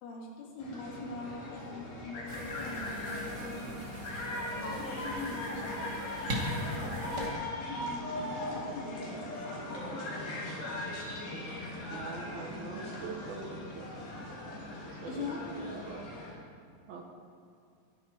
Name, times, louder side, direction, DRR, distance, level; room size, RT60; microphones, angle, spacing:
voice 1, 0.0-3.8 4.5-6.0 6.7-9.2 9.5-10.1 15.1-15.4, left 3 dB, 85° left, -1 dB, 4.6 m, -43 dB
sound 1, 0.6-16.3, left 1 dB, 55° left, 4.3 m, -39 dB
sound 2, 2.3-7.3, equal, 35° right, 1.7 m, -39 dB
voice 2, 11.9-13.9 14.9-16.1 16.9-17.0, right 5 dB, 70° right, 1 dB, 2.5 m, -44 dB
21.5 x 10.5 x 4.5 m, 2.4 s
omnidirectional pair, 5.4 m